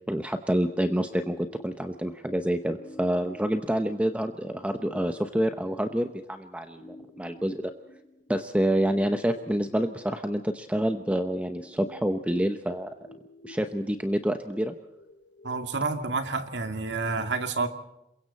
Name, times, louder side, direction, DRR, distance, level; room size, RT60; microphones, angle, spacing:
voice 1, 0.1-7.7 8.3-12.9 13.4-14.7, right 1 dB, 5° right, 7 dB, 0.9 m, -27 dB
sound 1, 0.6-16.6, left 1 dB, 65° left, 3.1 m, -51 dB
voice 2, 15.4-17.7, right 3 dB, 75° right, 6 dB, 2.2 m, -29 dB
27.5 x 23.0 x 4.2 m, 0.86 s
head